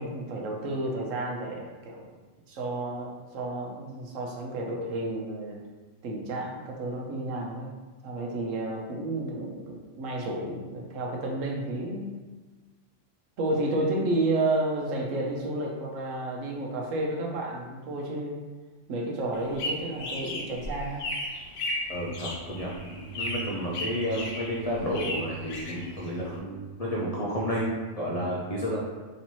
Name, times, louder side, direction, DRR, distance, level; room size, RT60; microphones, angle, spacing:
voice 1, 0.0-2.0 2.5-5.6 6.0-7.7 8.0-12.1 13.4-18.4 18.9-21.0, right 2 dB, 85° right, -1 dB, 1.1 m, -31 dB
sound 1, 19.3-26.4, left 1 dB, 75° left, 0.9 m, -35 dB
voice 2, 21.9-28.8, equal, 45° left, -6 dB, 0.5 m, -31 dB
4.2 x 3.1 x 3.0 m, 1.3 s
omnidirectional pair, 1.3 m